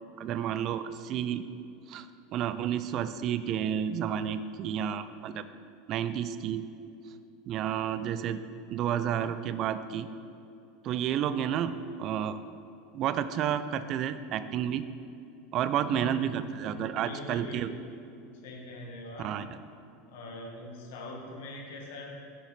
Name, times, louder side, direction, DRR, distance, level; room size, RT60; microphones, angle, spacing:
voice 1, 0.2-1.4 1.9-5.5 5.9-6.7 7.5-8.4 8.7-10.1 10.8-12.4 12.9-14.9 15.5-17.7 19.2-19.5, right 9 dB, 50° right, 13 dB, 0.4 m, -31 dB
voice 2, 15.9-16.3 16.6-17.7 18.4-19.4 20.1-22.3, left 2 dB, 70° left, 0 dB, 1.5 m, -42 dB
7.2 x 6.8 x 4.1 m, 2.6 s
hypercardioid pair, 85°, 0 cm